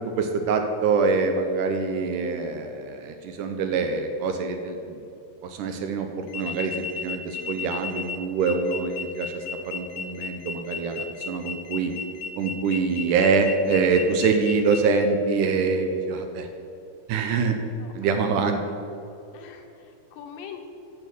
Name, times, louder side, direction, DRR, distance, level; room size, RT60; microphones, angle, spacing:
voice 1, 0.1-5.0 5.4-11.9 12.4-16.5 17.1-17.5 17.9-18.6, right 4 dB, 80° right, 6 dB, 2.0 m, -25 dB
sound 1, 6.3-14.8, left 7 dB, 65° left, 1.7 m, -34 dB
voice 2, 17.8-18.2 19.3-20.7, left 7 dB, 80° left, 4 dB, 2.7 m, -43 dB
8.3 x 6.8 x 7.0 m, 2.7 s
omnidirectional pair, 4.0 m